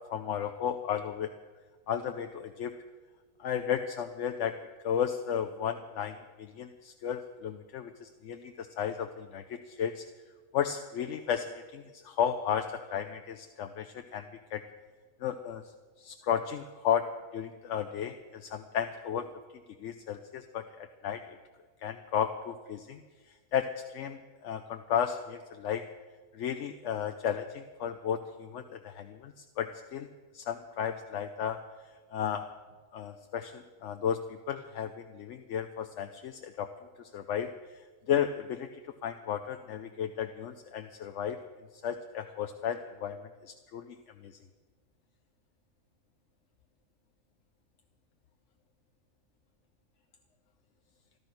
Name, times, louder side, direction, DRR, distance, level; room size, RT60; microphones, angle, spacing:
voice 1, 0.1-1.3 1.9-2.7 3.4-4.5 4.8-10.0 10.5-14.6 15.2-15.6 16.0-19.3 19.8-21.4 21.8-23.0 23.3-25.8 26.3-30.1 30.3-31.6 32.1-32.5 32.9-36.7 37.0-38.7 39.0-41.4 41.8-44.4, left 8 dB, 60° left, 7 dB, 0.9 m, -34 dB
14.0 x 13.0 x 6.0 m, 1.4 s
omnidirectional pair, 1.5 m